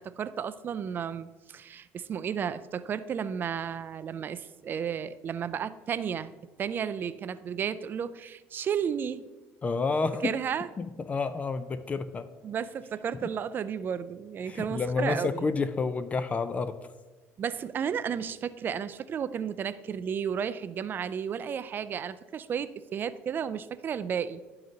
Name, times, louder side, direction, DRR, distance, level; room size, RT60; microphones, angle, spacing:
voice 1, 0.0-6.3 6.6-9.2 10.2-10.7 12.4-15.5 17.4-24.4, right 7 dB, 40° right, 14 dB, 0.4 m, -33 dB
voice 2, 9.6-10.4 10.8-12.3 14.5-16.8, left 4 dB, 25° left, 12 dB, 0.4 m, -29 dB
11.0 x 3.9 x 4.0 m, 1.2 s
cardioid pair, 105°, 5 cm